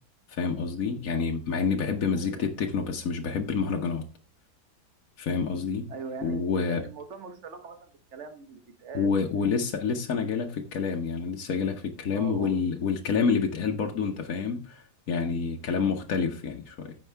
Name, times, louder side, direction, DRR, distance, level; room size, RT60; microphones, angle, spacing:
voice 1, 0.3-4.0 5.2-5.9 6.2-6.8 8.9-16.9, left 5 dB, 60° left, 1 dB, 1.3 m, -28 dB
voice 2, 2.1-2.5 5.9-9.4 12.1-12.7, right 5 dB, 45° right, 7 dB, 1.5 m, -42 dB
15.0 x 5.5 x 3.4 m, 0.36 s
omnidirectional pair, 1.8 m